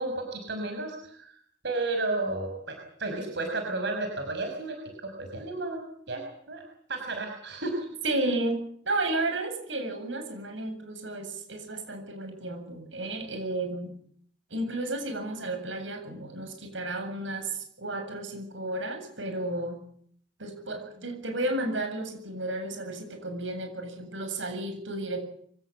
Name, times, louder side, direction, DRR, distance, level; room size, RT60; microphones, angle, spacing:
voice 1, 0.0-1.3 1.6-2.7 3.0-4.8 5.0-5.8 6.1-6.6 6.9-7.7, right 2 dB, 65° right, 4 dB, 5.5 m, -32 dB
voice 2, 8.0-8.6 8.8-13.9 14.5-19.8 20.4-25.2, right 2 dB, 85° right, 5 dB, 7.7 m, -32 dB
25.0 x 18.0 x 8.8 m, 0.63 s
head